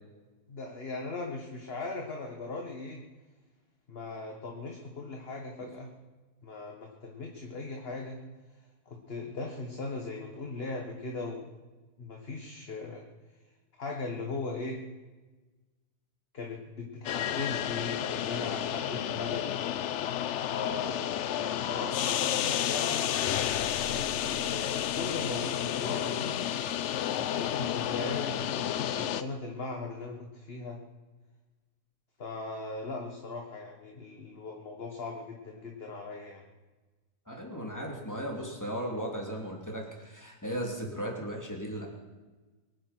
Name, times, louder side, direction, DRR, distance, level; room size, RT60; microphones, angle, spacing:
voice 1, 0.5-3.0 3.9-5.9 6.4-8.2 8.9-11.5 12.0-13.0 13.8-14.8 16.3-19.5 20.5-23.1 23.9-26.4 27.1-30.8 32.2-36.4, left 3 dB, 40° left, 1 dB, 1.7 m, -38 dB
sound 1, 17.1-29.2, left 10 dB, 65° left, 0.8 m, -31 dB
voice 2, 37.3-41.9, equal, 10° left, 0 dB, 3.0 m, -36 dB
23.5 x 9.5 x 6.1 m, 1.2 s
omnidirectional pair, 1.7 m